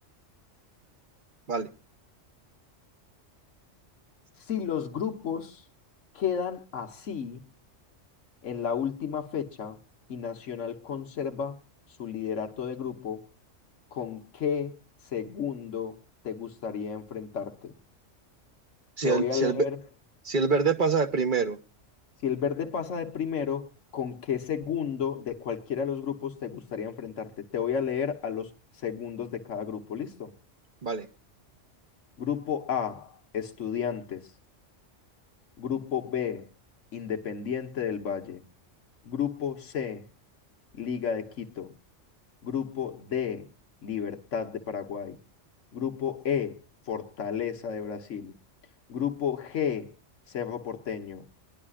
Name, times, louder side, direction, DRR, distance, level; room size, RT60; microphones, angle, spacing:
voice 1, 4.5-5.6 6.1-7.4 8.4-9.8 10.1-11.6 12.0-13.2 13.9-14.8 15.1-16.0 16.2-17.7 19.0-19.8 22.2-28.5 28.8-30.3 32.2-34.3 35.6-36.5 36.9-38.4 39.0-40.0 40.7-41.7 42.4-43.5 43.8-45.2 45.7-46.6 46.9-48.3 48.9-49.9 50.3-51.3, left 7 dB, 80° left, 1.5 m, -32 dB
voice 2, 19.0-19.6 20.2-21.6 30.8-31.1, right 5 dB, 45° right, 1.1 m, -25 dB
22.5 x 11.0 x 2.4 m
omnidirectional pair, 1.3 m